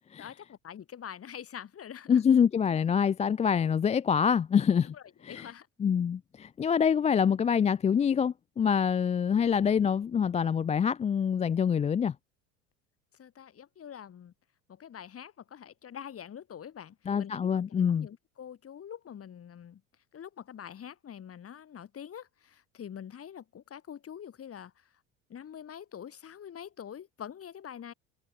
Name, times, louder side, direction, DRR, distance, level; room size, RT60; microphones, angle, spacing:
voice 1, 0.2-2.2 4.8-5.7 13.2-14.3 14.7-17.5 17.9-19.8 20.1-24.9 25.3-27.9, left 9 dB, 35° left, 3.4 m, -45 dB
voice 2, 2.1-4.9 5.2-5.5 5.8-12.1 17.1-18.1, left 7 dB, 20° left, 0.4 m, -25 dB
hypercardioid pair, 85°, 39 cm